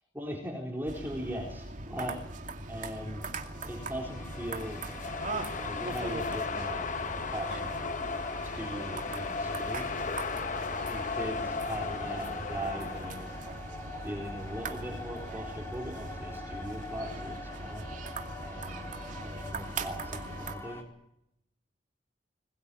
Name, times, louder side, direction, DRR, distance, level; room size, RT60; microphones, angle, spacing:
voice 1, 0.1-2.2 2.7-3.2 3.6-4.8 5.5-6.9 7.3-7.7 8.4-9.9 10.9-13.4 14.0-17.8 18.4-18.9 19.2-20.8, equal, 10° right, 0 dB, 4.0 m, -39 dB
sound 1, 0.9-20.6, right 2 dB, 45° right, 2.4 m, -40 dB
sound 2, 2.6-20.8, left 2 dB, 15° left, 4.3 m, -45 dB
sound 3, 3.8-13.6, left 4 dB, 45° left, 0.9 m, -36 dB
21.5 x 20.0 x 9.8 m, 0.81 s
head